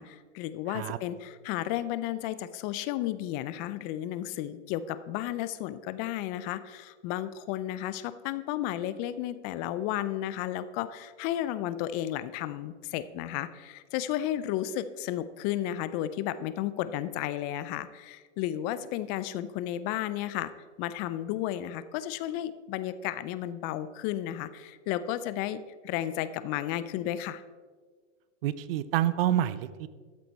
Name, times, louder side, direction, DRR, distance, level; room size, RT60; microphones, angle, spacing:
voice 1, 0.0-20.5 20.8-27.4, left 12 dB, 25° left, 14 dB, 0.4 m, -33 dB
voice 2, 28.4-29.9, right 12 dB, 55° right, 15 dB, 0.7 m, -28 dB
12.5 x 7.7 x 4.1 m, 1.5 s
hypercardioid pair, 125°, 36 cm